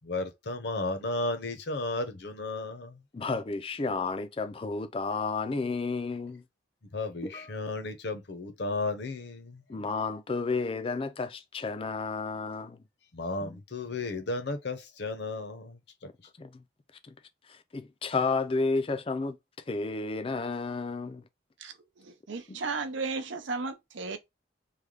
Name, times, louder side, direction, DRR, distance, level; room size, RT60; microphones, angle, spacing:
voice 1, 0.0-3.0 6.9-9.6 13.1-15.8, left 2 dB, 60° left, 0.7 m, -34 dB
voice 2, 3.1-6.4 7.2-7.5 9.7-12.8 13.4-13.6 16.4-16.6 17.1-17.2 17.5-19.4 19.7-21.2 22.5-22.6, left 4 dB, 30° left, 0.4 m, -32 dB
voice 3, 21.6-24.2, right 4 dB, 75° right, 0.6 m, -35 dB
3.3 x 2.2 x 3.6 m
head